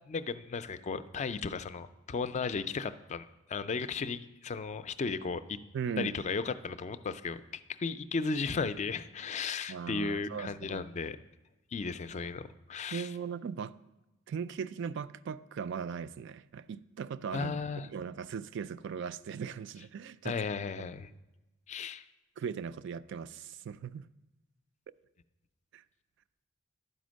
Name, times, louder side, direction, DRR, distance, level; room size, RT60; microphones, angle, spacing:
voice 1, 0.1-5.6 6.0-11.2 11.7-13.1 17.3-17.9 20.2-21.1 21.7-22.0, left 4 dB, 35° left, 0.4 m, -35 dB
voice 2, 5.7-6.1 9.7-10.9 12.9-13.7 14.3-17.5 17.9-20.4 20.8-20.9 22.4-24.1 24.9-25.0 25.7-25.8, right 6 dB, 60° right, 0.3 m, -38 dB
11.0 x 5.1 x 6.3 m
head